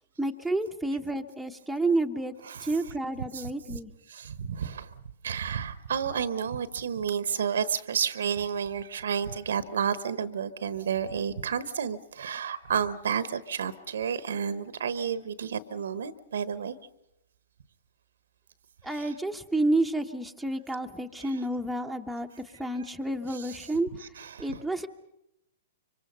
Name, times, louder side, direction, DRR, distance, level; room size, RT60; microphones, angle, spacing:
voice 1, 0.2-2.3 2.6-3.9 18.8-23.9 24.4-24.9, right 2 dB, ahead, 2 dB, 1.1 m, -30 dB
voice 2, 3.3-3.8 4.1-4.9 5.2-16.8 18.9-19.1 21.2-21.3 23.3-23.6 24.2-24.6, right 7 dB, 70° right, 15 dB, 1.1 m, -31 dB
25.5 x 24.5 x 5.5 m, 0.87 s
hypercardioid pair, 115°, 0 cm